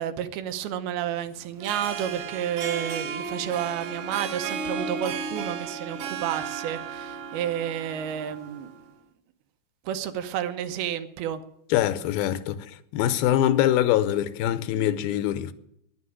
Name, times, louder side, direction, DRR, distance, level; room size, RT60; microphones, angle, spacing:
voice 1, 0.0-8.7 9.9-11.4, right 10 dB, 85° right, 2.8 m, -31 dB
Harp, 1.5-8.8, right 5 dB, 65° right, 2.5 m, -34 dB
voice 2, 11.7-15.5, left 12 dB, 80° left, 2.5 m, -24 dB
10.5 x 9.9 x 9.7 m
omnidirectional pair, 4.4 m